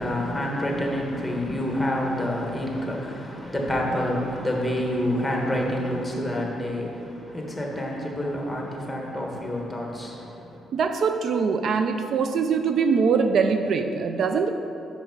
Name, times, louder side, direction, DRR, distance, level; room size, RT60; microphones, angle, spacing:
voice 1, 0.0-10.6, left 1 dB, 5° left, -1 dB, 1.4 m, -28 dB
voice 2, 10.7-14.5, right 5 dB, 60° right, 7 dB, 0.3 m, -23 dB
5.7 x 5.5 x 5.3 m, 2.8 s
cardioid pair, 90°, 0 cm